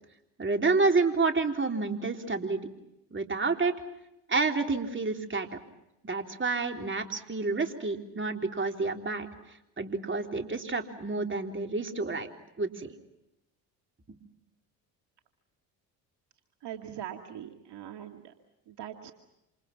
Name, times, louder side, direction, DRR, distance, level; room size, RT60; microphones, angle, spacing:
voice 1, 0.4-2.6 3.1-3.7 4.3-5.5 6.0-9.3 9.8-12.3 12.6-13.0 14.1-14.2, right 3 dB, 25° right, 4 dB, 3.7 m, -29 dB
voice 2, 16.6-18.3 18.7-19.1, right 10 dB, 55° right, 5 dB, 2.4 m, -41 dB
28.0 x 28.0 x 5.9 m, 0.88 s
hypercardioid pair, 60°, 48 cm